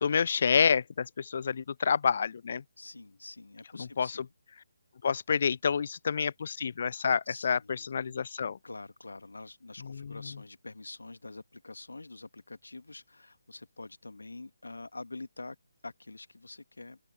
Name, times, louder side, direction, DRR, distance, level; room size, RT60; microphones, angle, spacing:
voice 1, 0.0-2.6 4.0-4.1 5.0-7.6 7.9-8.6 9.9-10.2, left 6 dB, 45° left, 0.4 m, -28 dB
voice 2, 2.8-4.3 7.3-7.9 8.6-15.6 15.8-17.0, left 2 dB, 65° left, 1.8 m, -46 dB
open air
figure-of-eight pair, 145°, 0 cm